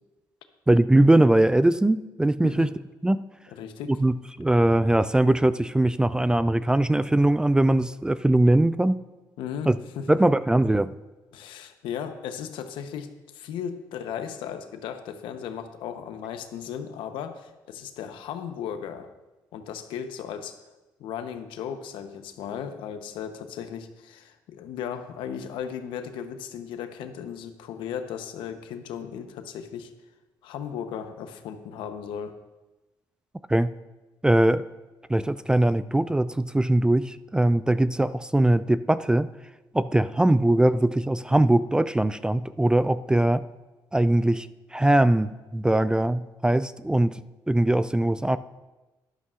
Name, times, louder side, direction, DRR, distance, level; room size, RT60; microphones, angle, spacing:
voice 1, 0.7-2.7 3.0-3.2 3.9-9.0 9.7-9.8 10.1-10.9 33.5-33.7 34.2-34.7 35.1-39.3 39.7-43.4 43.9-44.5 44.7-47.2 47.5-48.4, right 1 dB, 10° right, 15 dB, 0.3 m, -21 dB
voice 2, 2.4-2.7 3.5-4.0 9.4-9.7 10.0-10.1 11.3-19.1 19.5-20.6 21.0-29.9 30.4-32.4, left 8 dB, 80° left, 8 dB, 0.8 m, -36 dB
12.5 x 11.5 x 2.5 m, 1.1 s
cardioid pair, 80°, 8 cm